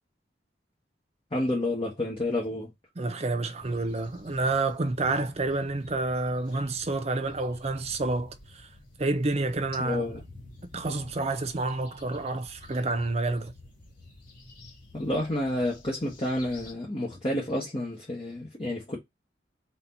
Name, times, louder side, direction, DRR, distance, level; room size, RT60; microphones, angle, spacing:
voice 1, 1.3-2.7 9.8-10.2 14.9-19.0, left 1 dB, 30° left, 1.1 m, -30 dB
voice 2, 3.0-8.3 9.0-10.0 10.7-13.5, right 2 dB, 35° right, 0.5 m, -29 dB
sound 1, 3.6-16.7, left 2 dB, 45° left, 2.5 m, -50 dB
4.2 x 2.8 x 4.0 m
head